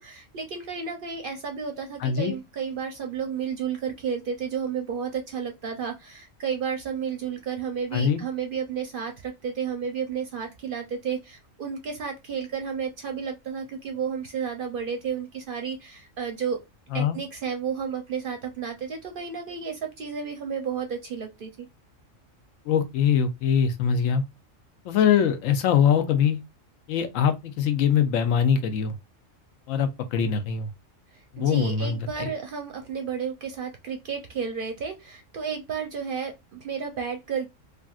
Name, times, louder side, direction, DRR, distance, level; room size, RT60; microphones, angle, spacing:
voice 1, 0.0-16.6 16.9-21.7 31.1-37.5, right 6 dB, 60° right, 0.6 m, -32 dB
voice 2, 2.0-2.3 7.9-8.2 16.9-17.2 22.7-24.2 24.8-26.4 26.9-28.9 29.7-30.7 31.3-32.3, left 7 dB, 85° left, 1.0 m, -23 dB
3.3 x 2.5 x 2.3 m
omnidirectional pair, 1.3 m